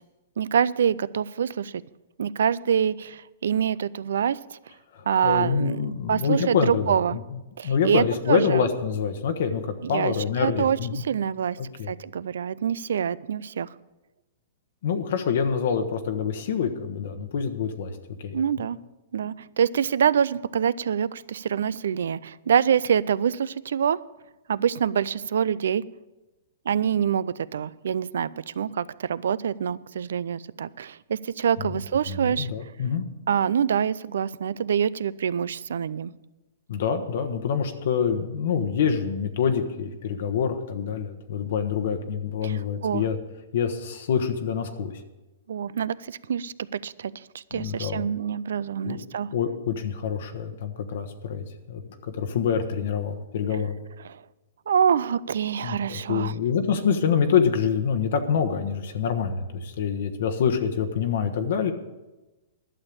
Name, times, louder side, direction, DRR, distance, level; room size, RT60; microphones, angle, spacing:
voice 1, 0.4-1.8 2.2-4.6 5.1-7.2 7.6-8.6 9.8-11.6 11.9-13.7 18.3-18.8 19.1-24.0 24.5-25.8 26.7-32.5 33.3-36.1 42.4-43.1 45.5-49.3 54.0-54.2 54.7-56.3, right 8 dB, 80° right, 20 dB, 0.4 m, -26 dB
voice 2, 4.9-7.0 7.6-11.0 11.6-11.9 14.8-18.7 31.6-31.7 32.1-33.0 36.7-43.2 43.5-45.0 47.5-48.0 48.8-49.0 49.3-53.8 55.6-61.7, left 7 dB, 65° left, 5 dB, 1.1 m, -26 dB
11.5 x 6.5 x 8.7 m, 1.1 s
hypercardioid pair, 140°, 0 cm